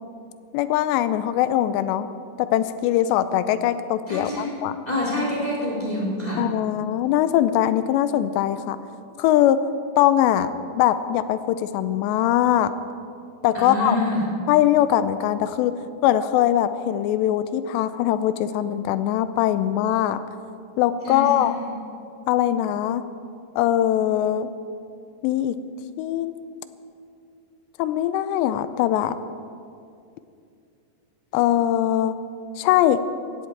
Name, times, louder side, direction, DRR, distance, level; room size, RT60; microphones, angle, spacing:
voice 1, 0.5-2.1 2.4-4.8 6.4-8.8 9.2-9.6 10.0-12.7 13.4-14.0 14.5-20.2 20.8-21.5 22.3-23.1 23.6-24.5 25.2-25.6 26.0-26.3 27.8-29.2 31.3-32.2 32.6-33.0, left 12 dB, 85° left, 12 dB, 2.7 m, -21 dB
voice 2, 4.1-4.5 4.9-6.4 13.5-14.2 21.0-21.7, left 1 dB, 10° left, -3 dB, 2.5 m, -26 dB
17.0 x 15.5 x 4.6 m, 2.5 s
omnidirectional pair, 5.2 m